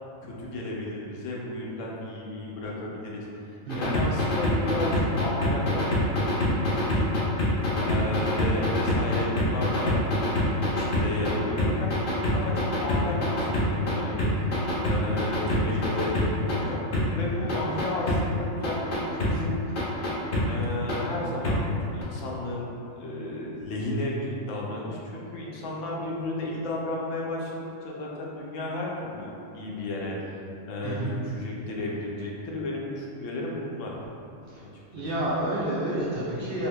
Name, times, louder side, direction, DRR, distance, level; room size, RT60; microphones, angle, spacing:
voice 1, 0.2-7.2 7.8-11.9 12.3-16.8 17.2-19.8 20.5-30.4 30.7-33.9 34.6-35.1, left 1 dB, 80° left, -3 dB, 0.9 m, -33 dB
sound 1, 3.7-11.3 11.6-13.9 14.2-16.5 16.9-17.0 17.5-18.2 18.6-19.3 19.8-20.4 20.9-21.0 21.4-21.5 22.0-22.1, left 2 dB, 55° left, 0.7 m, -25 dB
voice 2, 3.7-4.0 17.2-17.3 30.8-31.1 34.9-36.7, right 1 dB, 55° right, -8 dB, 0.7 m, -29 dB
3.6 x 2.7 x 2.2 m, 2.7 s
omnidirectional pair, 1.3 m